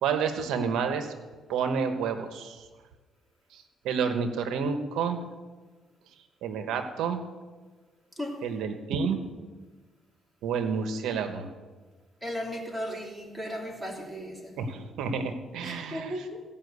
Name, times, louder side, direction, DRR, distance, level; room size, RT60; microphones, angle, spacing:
voice 1, 0.0-1.1 1.5-2.7 3.5-5.2 6.4-7.2 8.4-9.2 10.4-11.5 14.6-16.1, right 6 dB, 85° right, 7 dB, 1.1 m, -29 dB
voice 2, 8.1-8.4 12.2-14.6 15.6-16.4, equal, 5° right, -2 dB, 3.3 m, -36 dB
16.5 x 5.7 x 8.1 m, 1.3 s
cardioid pair, 90°, 0 cm